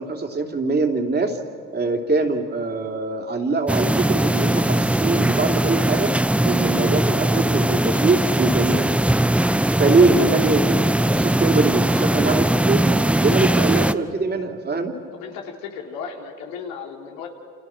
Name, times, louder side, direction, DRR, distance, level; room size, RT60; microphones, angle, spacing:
voice 1, 0.0-1.4 1.7-6.1 6.4-8.9 9.8-10.8 11.1-15.0, right 3 dB, 30° right, 4 dB, 3.4 m, -22 dB
sound 1, 3.7-13.9, right 1 dB, 5° right, 0.7 m, -20 dB
voice 2, 15.1-17.3, left 6 dB, 85° left, 2 dB, 3.5 m, -35 dB
29.5 x 27.5 x 6.2 m, 2.3 s
supercardioid pair, 85°, 35 cm